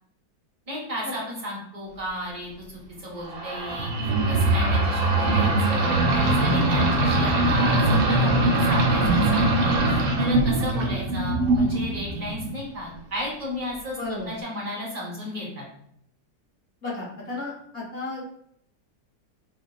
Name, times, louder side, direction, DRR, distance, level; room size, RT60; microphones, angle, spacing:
voice 1, 0.7-14.0 14.3-15.6, equal, 35° right, -4 dB, 0.7 m, -34 dB
sound 1, 3.3-12.6, right 2 dB, 80° right, 1.4 m, -22 dB
voice 2, 14.0-14.3 16.8-18.2, left 2 dB, 40° left, -6 dB, 1.1 m, -33 dB
5.3 x 2.2 x 2.3 m, 0.71 s
omnidirectional pair, 2.0 m